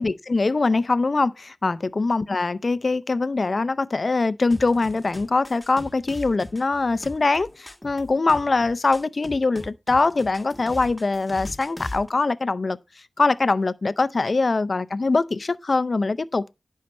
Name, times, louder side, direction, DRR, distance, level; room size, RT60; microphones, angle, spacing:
voice 1, 0.0-12.8 13.2-16.6, left 3 dB, 55° left, 0.5 m, -23 dB
sound 1, 4.5-12.1, left 1 dB, 15° left, 1.7 m, -40 dB
10.5 x 6.5 x 4.2 m
wide cardioid pair, 65°, 0 cm